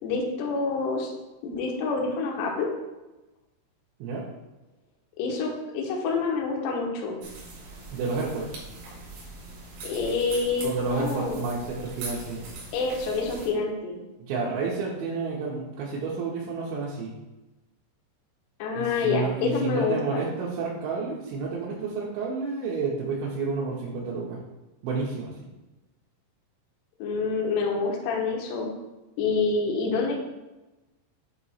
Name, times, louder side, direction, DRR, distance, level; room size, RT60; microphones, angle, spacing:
voice 1, 0.0-1.1 1.4-2.7 5.2-7.2 9.8-11.4 12.7-14.0 18.6-20.3 27.0-28.7 29.2-30.1, left 4 dB, 80° left, 0 dB, 2.5 m, -27 dB
sound 1, 7.2-13.5, right 3 dB, 65° right, 2.2 m, -41 dB
voice 2, 7.9-8.6 10.6-12.4 14.3-17.1 18.7-24.4 24.8-25.5, right 4 dB, 80° right, -5 dB, 2.8 m, -30 dB
8.2 x 3.0 x 4.2 m, 1.1 s
omnidirectional pair, 5.9 m